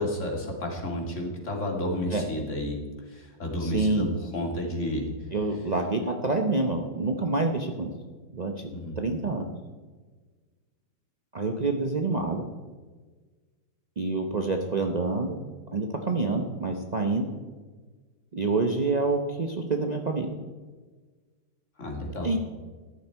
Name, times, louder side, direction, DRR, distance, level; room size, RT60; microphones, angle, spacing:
voice 1, 0.0-5.2 8.7-9.0 21.8-22.3, left 1 dB, 35° left, 0 dB, 2.6 m, -31 dB
voice 2, 3.6-4.1 5.3-7.9 8.3-8.5 9.0-9.5 11.3-12.5 14.0-15.4 15.7-17.3 18.3-20.3 22.2-22.4, right 3 dB, 85° right, 3 dB, 0.3 m, -27 dB
13.5 x 11.5 x 4.6 m, 1.4 s
omnidirectional pair, 2.2 m